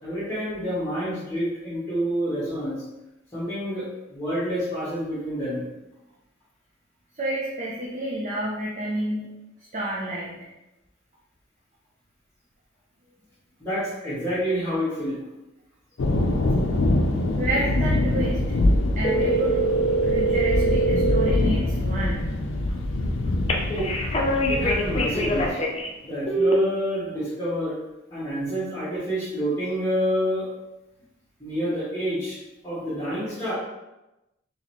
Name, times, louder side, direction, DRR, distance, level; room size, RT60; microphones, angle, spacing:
voice 1, 0.0-2.8 3.3-5.6 13.6-15.2 23.7-23.9 24.5-25.6 26.0-27.7 28.1-30.5 31.4-32.4 32.6-33.5, equal, 15° left, -13 dB, 1.5 m, -28 dB
voice 2, 7.2-9.3 9.7-10.3 17.4-18.4 19.0-19.8 20.0-22.3, right 1 dB, 40° right, -5 dB, 0.6 m, -29 dB
sound 1, 16.0-25.5, left 1 dB, 85° left, 0.5 m, -24 dB
sound 2, 19.0-21.3 23.5-25.9 26.3-26.5, right 2 dB, 30° left, 0.5 m, -23 dB
4.0 x 3.1 x 3.0 m, 0.98 s
head